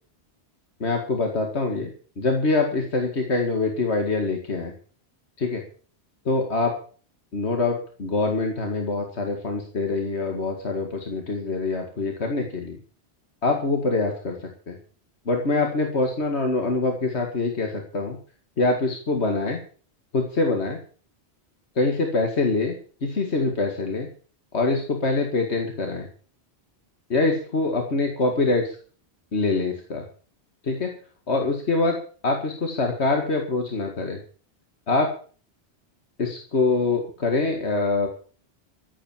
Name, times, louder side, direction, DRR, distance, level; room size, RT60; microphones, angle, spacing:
voice 1, 0.8-1.9 2.2-4.7 5.4-5.6 6.3-6.8 7.3-12.8 13.4-14.8 15.3-18.2 18.6-19.6 20.1-20.8 21.8-22.7 23.0-24.1 24.5-26.1 27.1-28.8 29.3-30.0 30.6-30.9 31.3-32.0 32.2-34.2 34.9-35.1 36.2-38.1, left 3 dB, 80° left, 3 dB, 2.3 m, -24 dB
14.5 x 9.0 x 7.3 m, 0.41 s
omnidirectional pair, 1.1 m